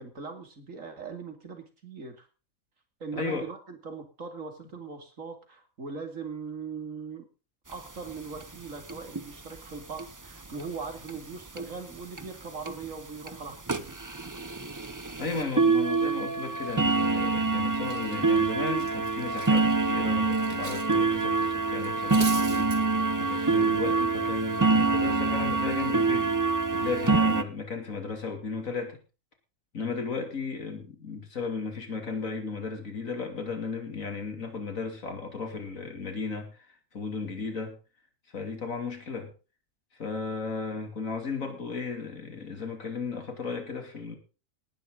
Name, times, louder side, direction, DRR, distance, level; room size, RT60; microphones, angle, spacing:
voice 1, 0.0-2.3 3.0-7.3 7.7-14.0, right 5 dB, 75° right, 6 dB, 3.1 m, -40 dB
voice 2, 3.1-3.5 15.2-22.7 23.2-26.3 26.7-29.0 29.7-37.8 38.3-39.3 39.9-44.2, left 4 dB, 80° left, 5 dB, 3.3 m, -35 dB
sound 1, 7.7-7.8 8.1-8.2 8.4-8.5 8.9-9.2 10.0-10.1 10.6-10.7 11.1-11.2 11.6-11.7 12.2-12.3 12.7-12.8 13.3-13.4 13.7-27.4, right 3 dB, 20° right, 0.6 m, -26 dB
Cutlery silverware, 17.5-17.6 17.8-20.9 21.2-21.4 21.8-22.8, right 3 dB, 55° right, 2.6 m, -40 dB
18.0 x 11.0 x 3.9 m, 0.33 s
omnidirectional pair, 1.4 m